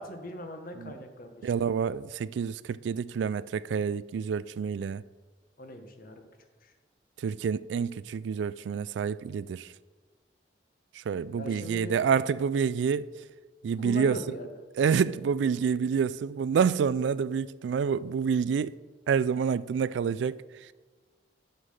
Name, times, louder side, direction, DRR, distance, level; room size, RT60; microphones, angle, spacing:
voice 1, 0.0-1.7 5.6-6.3 6.6-6.7 11.4-12.0 13.8-14.6 14.9-15.0, left 1 dB, 55° left, 1.1 m, -40 dB
voice 2, 1.4-5.0 7.2-9.7 11.1-13.1 13.6-14.2 14.8-18.7 19.1-20.4, right 6 dB, 90° right, 0.3 m, -28 dB
8.0 x 5.7 x 6.6 m
head